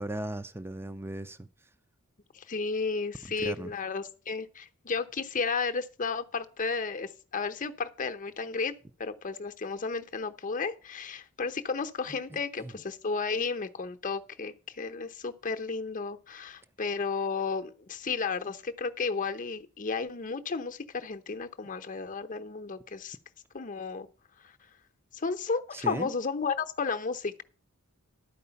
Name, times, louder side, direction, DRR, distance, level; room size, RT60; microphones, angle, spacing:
voice 1, 0.0-1.5 3.4-3.7 12.3-12.7 25.7-26.1, right 1 dB, 10° right, 0.4 m, -37 dB
voice 2, 2.3-8.7 9.0-23.2 23.5-24.1 24.4-24.6 25.1-27.4, left 4 dB, 35° left, 0.8 m, -33 dB
12.0 x 4.8 x 6.9 m
head